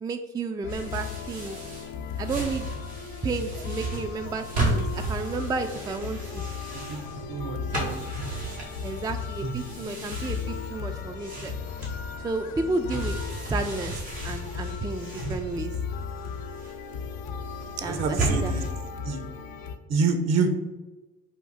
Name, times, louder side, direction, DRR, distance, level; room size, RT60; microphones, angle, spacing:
voice 1, 0.0-1.6 2.2-2.7 3.2-6.4 8.8-11.6 12.2-15.7 17.8-18.6, right 3 dB, 15° right, 7 dB, 0.3 m, -32 dB
sound 1, 0.6-19.8, left 5 dB, 75° left, 0.5 m, -36 dB
sound 2, 0.7-18.7, right 2 dB, 90° right, 1.4 m, -35 dB
voice 2, 7.3-8.0 9.4-9.6 17.9-18.6 19.0-19.2 19.9-20.5, right 4 dB, 55° right, 6 dB, 0.9 m, -27 dB
5.0 x 2.7 x 3.9 m, 1.1 s
hypercardioid pair, 50°, 31 cm